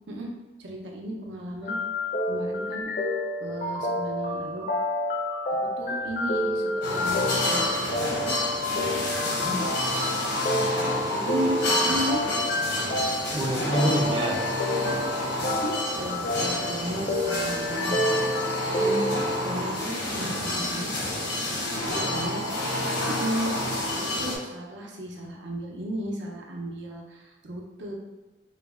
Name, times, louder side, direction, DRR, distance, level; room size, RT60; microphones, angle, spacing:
voice 1, 0.6-1.8 2.3-2.9 3.4-4.7 5.8-7.7 8.0-8.4 11.1-12.2 15.6-18.2 18.7-19.1 19.4-20.9 21.8-22.5 23.1-23.6 24.2-27.9, equal, 80° right, 0 dB, 0.7 m, -34 dB
sound 1, 1.6-19.5, left 1 dB, 45° left, 0.4 m, -29 dB
sound 2, 6.8-24.3, left 1 dB, 75° left, 0.8 m, -29 dB
voice 2, 9.3-9.7 13.3-14.4 21.5-22.0, right 1 dB, 25° right, 0 dB, 0.4 m, -28 dB
4.0 x 2.1 x 3.5 m, 1.2 s
head